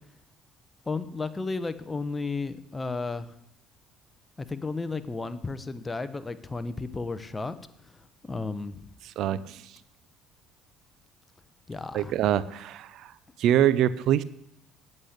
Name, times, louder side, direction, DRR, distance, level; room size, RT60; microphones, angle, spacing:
voice 1, 0.9-3.3 4.4-8.9 11.7-12.1, left 3 dB, 20° left, 12 dB, 1.0 m, -33 dB
voice 2, 9.2-9.6 11.9-13.1 13.4-14.2, right 11 dB, 65° right, 17 dB, 0.6 m, -24 dB
8.8 x 8.4 x 8.1 m, 0.79 s
supercardioid pair, 75°, 0 cm